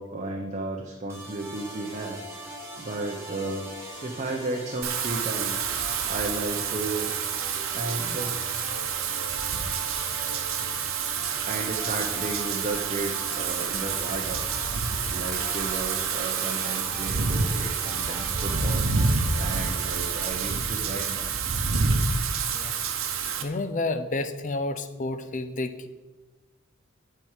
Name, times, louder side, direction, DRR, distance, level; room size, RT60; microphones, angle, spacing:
voice 1, 0.0-3.7 4.0-7.1 7.7-8.4 11.5-14.4 14.9-18.9 19.4-21.4, right 2 dB, 35° right, 1 dB, 0.8 m, -34 dB
sound 1, 1.1-20.3, right 1 dB, 15° right, 2.0 m, -41 dB
Wind / Rain, 4.8-23.4, right 5 dB, 75° right, 0.9 m, -28 dB
voice 2, 23.4-25.9, left 2 dB, 40° left, 10 dB, 0.6 m, -30 dB
7.9 x 4.7 x 7.3 m, 1.2 s
head